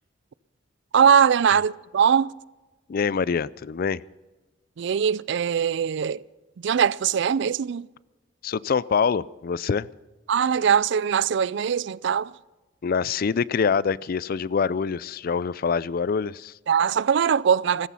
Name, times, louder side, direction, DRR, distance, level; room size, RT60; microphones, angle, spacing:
voice 1, 0.9-2.3 4.8-6.2 6.6-7.9 10.3-12.3 16.7-17.9, right 7 dB, 65° right, 0.4 m, -21 dB
voice 2, 2.9-4.0 8.4-9.9 12.8-16.6, left 6 dB, 50° left, 0.4 m, -25 dB
15.5 x 14.5 x 5.6 m
head